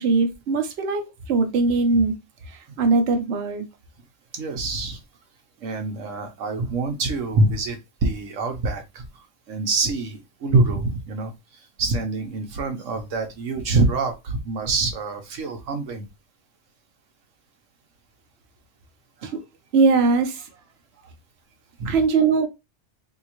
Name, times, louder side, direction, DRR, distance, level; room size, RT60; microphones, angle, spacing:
voice 1, 0.0-2.1 2.5-3.6 19.2-19.4 19.7-20.5 21.8-22.5, right 4 dB, 60° right, 1.0 m, -21 dB
voice 2, 4.3-5.0 5.6-11.3 11.8-16.0 21.8-22.0, right 3 dB, 80° right, 1.1 m, -25 dB
3.7 x 2.7 x 2.9 m
omnidirectional pair, 1.3 m